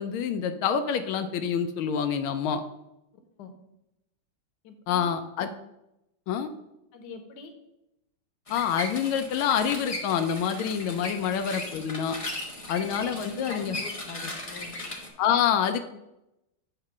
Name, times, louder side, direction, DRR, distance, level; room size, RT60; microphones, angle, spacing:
voice 1, 0.0-2.6 4.9-5.5 6.3-6.5 8.5-12.2 12.7-13.8 15.2-15.8, left 8 dB, 85° left, 8 dB, 1.4 m, -27 dB
voice 2, 4.6-5.1 6.9-7.5 11.3-11.4 13.1-14.8, left 4 dB, 60° left, 6 dB, 1.3 m, -43 dB
sound 1, 8.5-15.1, left 2 dB, 45° left, 0.4 m, -37 dB
8.4 x 2.9 x 5.9 m, 0.87 s
omnidirectional pair, 2.2 m